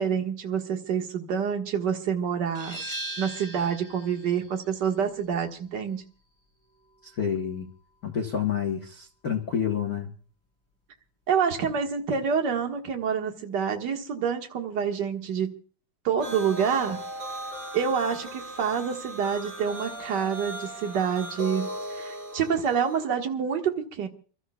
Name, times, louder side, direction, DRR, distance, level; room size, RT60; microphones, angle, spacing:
voice 1, 0.0-2.8 3.2-6.0 11.3-15.6 16.0-17.0 17.7-24.1, right 7 dB, 45° right, 3 dB, 1.7 m, -27 dB
sound 1, 2.6-8.0, right 1 dB, 10° left, 4.5 m, -41 dB
voice 2, 7.0-7.7 8.0-10.1, left 8 dB, 65° left, 2 dB, 0.9 m, -29 dB
sound 2, 16.2-23.1, equal, 20° right, 4.6 m, -38 dB
29.5 x 13.0 x 2.3 m, 0.41 s
omnidirectional pair, 3.6 m